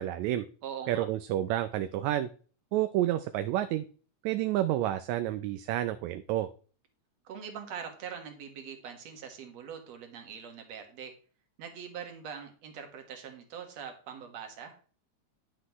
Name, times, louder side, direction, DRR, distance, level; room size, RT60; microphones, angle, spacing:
voice 1, 0.0-0.5 0.9-2.3 2.7-3.8 4.2-6.5, right 13 dB, 80° right, 11 dB, 1.9 m, -29 dB
voice 2, 0.6-1.1 7.2-11.1 11.6-14.8, right 7 dB, 65° right, 5 dB, 2.6 m, -42 dB
10.0 x 7.5 x 3.0 m, 0.40 s
omnidirectional pair, 3.3 m